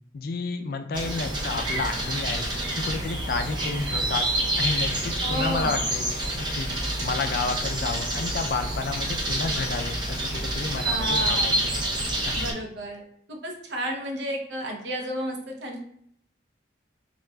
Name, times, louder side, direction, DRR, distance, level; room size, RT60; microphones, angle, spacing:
voice 1, 0.1-2.4 2.8-4.3 4.6-6.1 6.3-11.7 12.2-12.5, left 3 dB, 50° left, 6 dB, 0.3 m, -31 dB
sound 1, 0.9-12.5, right 1 dB, 25° right, 0.6 m, -28 dB
voice 2, 5.2-5.8 10.8-11.6 12.3-13.0 13.3-15.8, equal, 65° right, 1 dB, 0.7 m, -32 dB
5.8 x 2.4 x 2.2 m, 0.70 s
head